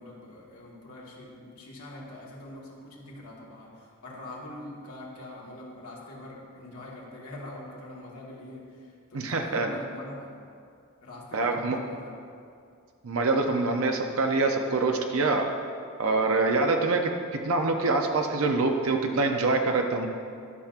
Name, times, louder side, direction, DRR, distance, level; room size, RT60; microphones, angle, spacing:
voice 1, 0.0-10.5 11.0-12.1, left 1 dB, 85° left, -3 dB, 1.6 m, -43 dB
voice 2, 9.1-9.7 11.3-11.8 13.0-15.5 16.0-20.1, right 3 dB, 70° right, 3 dB, 0.6 m, -25 dB
12.0 x 5.9 x 2.5 m, 2.3 s
head